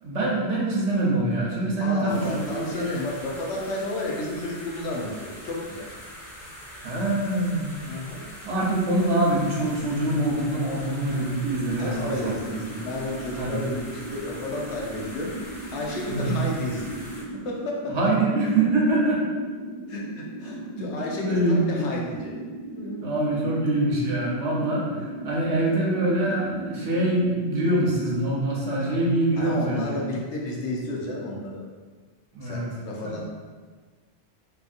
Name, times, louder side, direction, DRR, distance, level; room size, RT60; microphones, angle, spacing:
voice 1, 0.0-2.8 6.8-7.7 8.4-12.8 13.3-13.7 16.1-16.3 17.9-19.2 20.8-20.9 21.2-21.9 23.0-29.9 32.3-32.7 33.0-33.1, right 2 dB, 75° right, -5 dB, 1.0 m, -24 dB
voice 2, 1.8-5.9 7.8-8.2 11.7-17.0 17.4-17.9 19.9-22.3 22.8-23.0 24.8-25.1 29.4-31.6 32.4-33.2, left 2 dB, 85° left, -2 dB, 0.9 m, -32 dB
sound 1, 2.1-17.2, equal, 30° left, 0.8 m, -42 dB
sound 2, 11.5-28.3, right 1 dB, 35° right, 0.6 m, -38 dB
2.7 x 2.6 x 2.4 m, 1.4 s
omnidirectional pair, 1.2 m